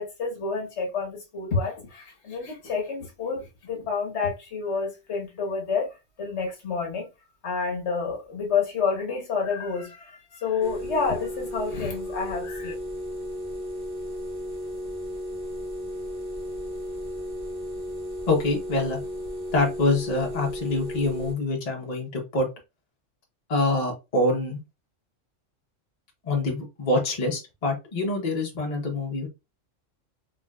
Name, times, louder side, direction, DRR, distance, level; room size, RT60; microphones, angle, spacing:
voice 1, 0.0-7.1 7.4-12.7, left 5 dB, 65° left, 1.2 m, -29 dB
sound 1, 10.6-21.3, equal, 55° right, 0.8 m, -34 dB
voice 2, 18.3-19.0 19.5-22.5 23.5-24.6 26.2-29.3, left 2 dB, 35° left, 0.8 m, -25 dB
3.6 x 2.4 x 2.3 m
omnidirectional pair, 1.3 m